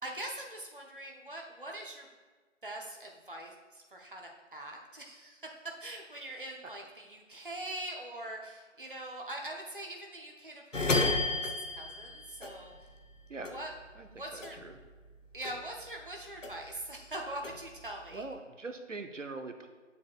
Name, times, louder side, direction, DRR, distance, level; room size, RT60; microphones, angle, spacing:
voice 1, 0.0-2.1 2.6-12.9 13.5-13.7 14.1-14.6 15.3-18.2, right 1 dB, 45° right, 0 dB, 0.7 m, -43 dB
sound 1, 10.7-13.2 13.4-15.1 15.4-16.9 17.2-18.4, left 2 dB, 80° left, 1.0 m, -33 dB
voice 2, 14.3-14.8 18.1-19.7, right 3 dB, 80° right, 7 dB, 0.7 m, -42 dB
7.3 x 6.2 x 2.3 m, 1.4 s
figure-of-eight pair, 180°, 37 cm